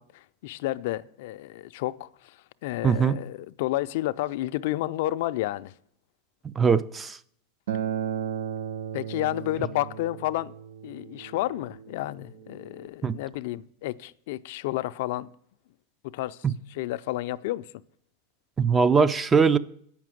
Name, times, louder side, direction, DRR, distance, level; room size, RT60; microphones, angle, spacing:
voice 1, 0.0-5.7 8.9-10.5 10.8-15.3 16.0-17.7, left 16 dB, 60° left, 0.4 m, -31 dB
voice 2, 2.8-3.2 6.4-7.2 13.0-13.2 18.6-19.6, right 5 dB, 15° right, 0.4 m, -21 dB
Acoustic guitar, 7.7-12.9, right 9 dB, 80° right, 0.5 m, -35 dB
8.4 x 5.9 x 7.6 m
supercardioid pair, 140°, 0 cm